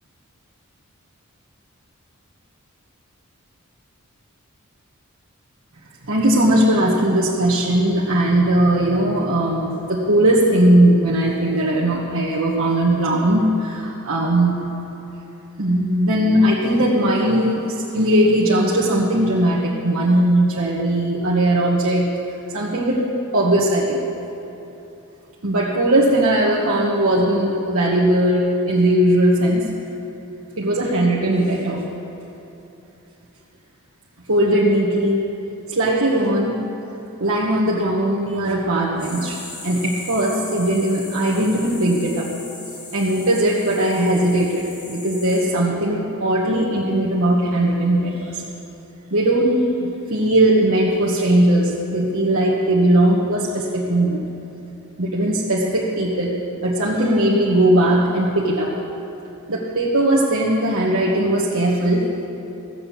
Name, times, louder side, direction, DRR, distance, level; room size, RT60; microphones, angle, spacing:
voice 1, 6.1-14.5 15.6-22.1 22.5-24.0 25.4-29.7 30.6-31.9 34.3-35.2 35.7-36.6 37.2-42.3 42.9-48.4 49.1-54.3 55.0-58.8 59.5-62.1, right 1 dB, 70° right, -6 dB, 1.4 m, -19 dB
sound 1, 39.0-45.4, left 2 dB, 40° left, 2.9 m, -38 dB
15.5 x 7.9 x 7.2 m, 3.0 s
head